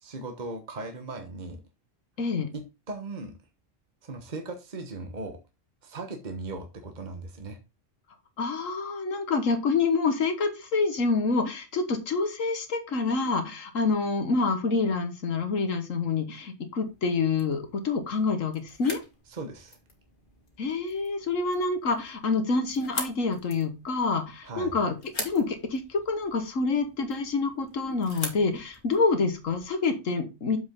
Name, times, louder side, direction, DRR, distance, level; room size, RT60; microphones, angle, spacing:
voice 1, 0.0-1.6 2.5-3.4 4.0-5.4 5.8-7.6 19.3-19.8 24.4-24.7, right 3 dB, 35° right, 5 dB, 1.3 m, -38 dB
voice 2, 2.2-2.5 8.4-19.0 20.6-30.6, left 4 dB, 85° left, 7 dB, 1.8 m, -27 dB
sound 1, 16.8-29.7, left 2 dB, 40° left, 2.1 m, -43 dB
7.3 x 6.2 x 3.7 m, 0.27 s
omnidirectional pair, 1.3 m